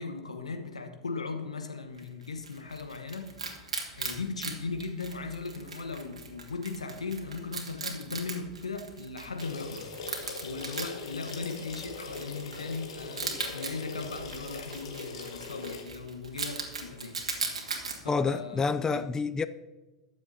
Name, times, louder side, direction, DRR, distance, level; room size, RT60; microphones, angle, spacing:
voice 1, 0.0-3.3 4.0-9.9 10.4-17.2 18.0-19.0, left 4 dB, 85° left, 1.2 m, -38 dB
Wild animals, 2.0-18.0, right 4 dB, 80° right, 1.6 m, -40 dB
sound 1, 9.4-15.8, left 4 dB, 70° left, 1.7 m, -41 dB
voice 2, 18.1-19.5, left 4 dB, 15° left, 0.4 m, -28 dB
21.0 x 7.1 x 2.8 m
figure-of-eight pair, 85°, 3 cm